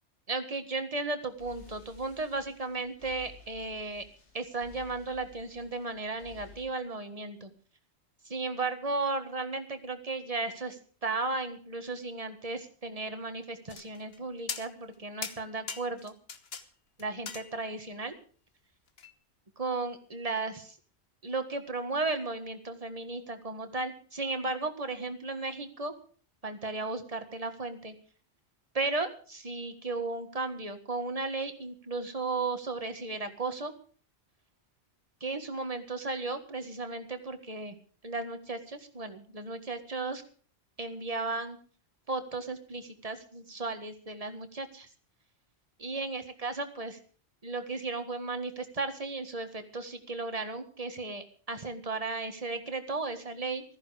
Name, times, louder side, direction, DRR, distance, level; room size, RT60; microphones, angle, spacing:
voice 1, 0.3-4.0 4.3-7.5 8.2-16.1 17.0-18.2 19.6-20.8 21.2-25.9 26.4-27.9 28.7-33.7 35.2-37.8 38.0-40.2 40.8-41.6 42.1-44.9 45.8-47.0 47.4-53.6, right 3 dB, 35° right, 8 dB, 1.7 m, -35 dB
sound 1, 1.2-6.6, left 5 dB, 85° left, 2.6 m, -54 dB
sound 2, 13.7-14.2 14.5-14.9 15.2-16.6 17.0-17.9 19.0-19.1, left 5 dB, 65° left, 1.3 m, -40 dB
15.5 x 14.0 x 5.0 m, 0.42 s
omnidirectional pair, 1.1 m